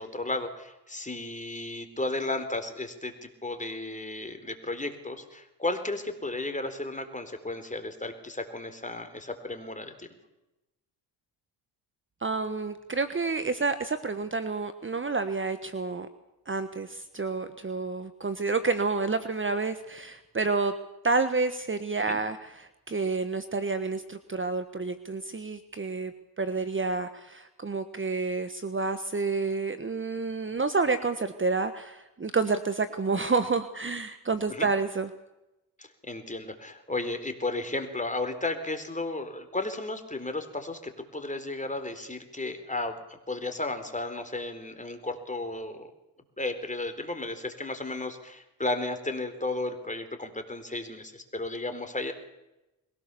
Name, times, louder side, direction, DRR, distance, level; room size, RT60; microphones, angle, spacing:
voice 1, 0.0-10.1 22.0-22.2 34.5-34.7 35.8-45.9 46.4-52.1, left 2 dB, 15° left, 7 dB, 4.0 m, -34 dB
voice 2, 12.2-16.1 16.5-20.7 21.0-26.1 26.4-35.1, right 4 dB, 25° right, 11 dB, 1.4 m, -29 dB
22.0 x 17.5 x 7.0 m, 0.96 s
supercardioid pair, 55°, 46 cm